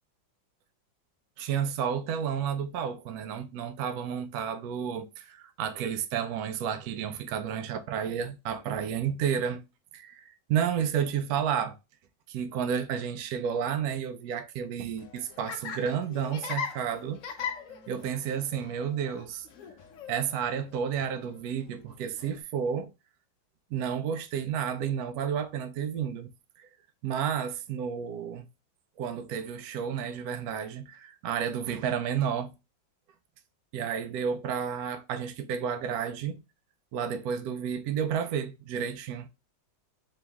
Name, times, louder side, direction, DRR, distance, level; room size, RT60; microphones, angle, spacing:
voice 1, 1.4-9.6 9.9-11.8 12.3-17.2 17.5-17.6 17.9-19.5 20.1-22.9 23.7-26.3 26.6-26.7 27.0-28.5 29.0-32.5 33.7-36.4 36.9-39.3, right 8 dB, 75° right, 0.9 m, -31 dB
Laughter, 14.9-22.4, left 7 dB, 80° left, 0.7 m, -41 dB
3.5 x 3.0 x 3.5 m
omnidirectional pair, 2.1 m